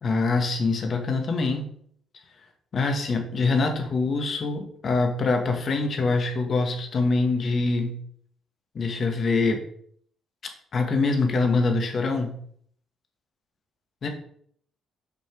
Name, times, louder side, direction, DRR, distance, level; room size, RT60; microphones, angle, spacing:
voice 1, 0.0-1.7 2.7-8.0 8.8-9.6 10.7-12.4 14.0-14.1, left 3 dB, 50° left, 4 dB, 1.7 m, -24 dB
6.9 x 5.6 x 4.7 m, 0.62 s
cardioid pair, 90°, 0 cm